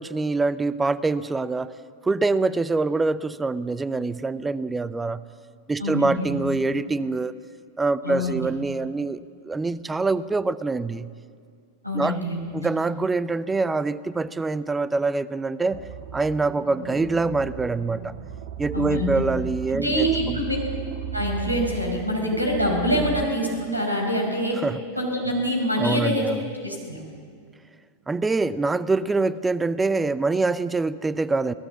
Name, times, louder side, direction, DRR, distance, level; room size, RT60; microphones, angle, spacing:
voice 1, 0.0-1.7 2.0-5.2 5.7-7.3 7.8-11.1 11.9-12.2 12.5-15.8 16.1-18.1 18.6-20.4 22.9-23.0 24.6-24.8 25.8-26.4 28.1-31.5, right 3 dB, 10° right, 18 dB, 0.6 m, -25 dB
voice 2, 5.8-6.4 8.0-8.5 11.8-12.5 18.7-19.2 19.7-20.6 21.1-24.6 24.9-26.3 26.6-27.0, equal, 90° right, 1 dB, 4.9 m, -25 dB
sound 1, 15.7-23.3, right 11 dB, 50° right, 1.7 m, -35 dB
25.5 x 17.5 x 7.3 m, 2.2 s
figure-of-eight pair, 90°, 0 cm